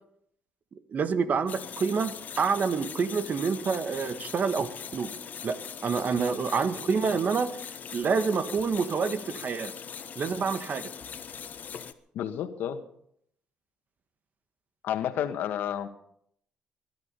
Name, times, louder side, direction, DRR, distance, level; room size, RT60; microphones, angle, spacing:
voice 1, 0.9-5.1 5.4-7.5 7.9-9.7 10.2-10.9, right 5 dB, 55° right, 10 dB, 1.7 m, -28 dB
sound 1, 1.5-11.9, left 7 dB, 55° left, 1.3 m, -41 dB
voice 2, 12.1-12.8 14.8-15.9, left 10 dB, 75° left, 9 dB, 1.6 m, -30 dB
22.0 x 11.0 x 5.5 m, 0.70 s
supercardioid pair, 55°, 3 cm